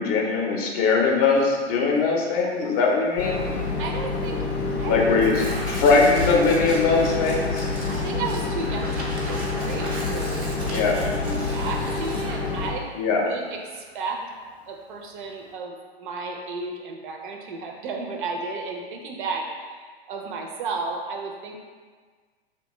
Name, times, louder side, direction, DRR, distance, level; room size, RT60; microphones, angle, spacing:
voice 1, 0.0-3.5 4.8-7.7 10.7-11.0 12.9-13.2, left 4 dB, 40° left, 0 dB, 0.5 m, -21 dB
Tearing, 1.2-15.5, right 2 dB, 85° right, 0.8 m, -40 dB
sound 1, 3.2-12.7, left 4 dB, 85° left, 0.6 m, -28 dB
voice 2, 3.8-4.4 4.8-5.0 7.9-12.9 13.2-14.2 14.7-21.6, right 4 dB, 50° right, 2 dB, 0.5 m, -33 dB
2.8 x 2.2 x 3.0 m, 1.5 s
hypercardioid pair, 110°, 32 cm